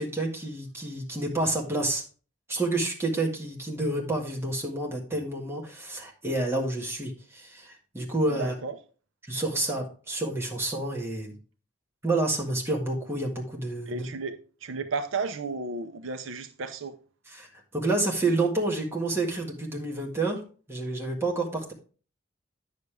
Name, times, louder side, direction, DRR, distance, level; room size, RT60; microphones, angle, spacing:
voice 1, 0.0-2.0 2.5-8.5 9.3-11.4 12.0-14.1 17.3-17.5 17.7-20.4 20.7-21.7, right 2 dB, 10° right, 1.7 m, -29 dB
voice 2, 8.3-8.7 13.9-14.3 14.6-16.9, right 4 dB, 75° right, 0.7 m, -33 dB
9.5 x 6.7 x 3.4 m
head